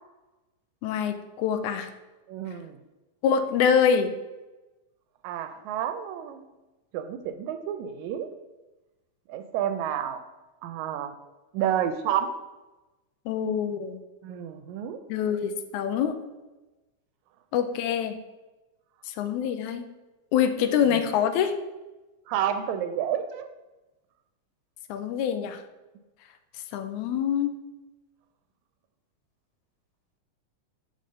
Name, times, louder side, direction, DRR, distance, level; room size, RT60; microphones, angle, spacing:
voice 1, 0.8-1.9 3.2-4.1 13.3-14.0 15.1-16.1 17.5-18.2 19.1-19.8 20.3-21.5 24.9-25.6 26.7-27.5, left 8 dB, 90° left, 9 dB, 2.1 m, -25 dB
voice 2, 2.3-2.8 5.2-6.5 6.9-8.3 9.3-10.2 10.6-11.1 11.5-12.3 14.2-15.0 20.9-21.0 22.3-23.5, right 9 dB, 85° right, 9 dB, 1.9 m, -30 dB
5.6 x 5.1 x 6.4 m, 1.1 s
omnidirectional pair, 3.3 m